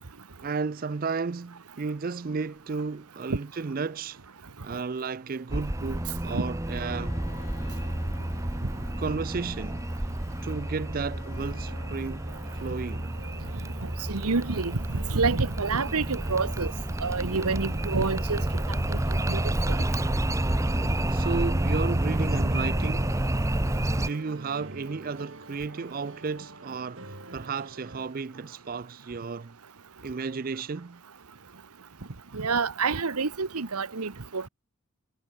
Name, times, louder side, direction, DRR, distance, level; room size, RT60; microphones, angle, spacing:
voice 1, 0.4-4.2 4.6-7.2 9.0-9.8 10.4-12.3 12.5-13.2 20.6-23.3 23.7-29.6 30.0-31.0, right 4 dB, 40° right, 0.4 m, -33 dB
sound 1, 5.5-24.1, right 1 dB, 15° right, 0.8 m, -29 dB
Bowed string instrument, 6.6-13.3, left 3 dB, 35° left, 2.2 m, -51 dB
sound 2, 11.3-28.1, right 1 dB, 60° right, 6.2 m, -47 dB
voice 2, 14.1-14.8 15.1-16.7 17.0-18.5 18.9-19.4 19.7-19.8 32.3-34.5, right 4 dB, 90° right, 1.2 m, -28 dB
head